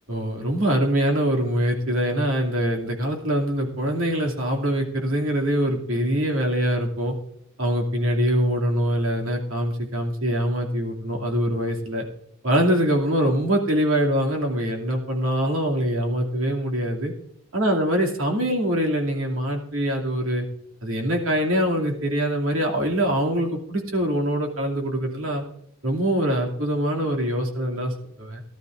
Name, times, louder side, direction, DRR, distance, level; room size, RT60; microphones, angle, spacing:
voice 1, 0.1-7.1 7.6-12.0 12.4-17.1 17.5-20.4 20.8-25.4 25.8-28.4, equal, 75° right, 1 dB, 2.6 m, -23 dB
19.0 x 12.0 x 2.6 m, 0.73 s
head